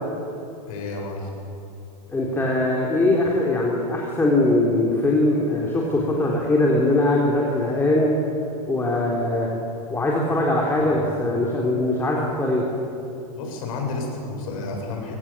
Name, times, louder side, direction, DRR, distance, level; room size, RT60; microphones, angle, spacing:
voice 1, 0.7-1.3 10.8-11.1 13.3-15.1, left 3 dB, 65° left, 1 dB, 7.2 m, -31 dB
voice 2, 2.1-8.1 8.7-9.5 9.9-12.7, left 2 dB, 10° left, -2 dB, 3.5 m, -21 dB
27.5 x 17.5 x 7.4 m, 2.7 s
hypercardioid pair, 120°, 19 cm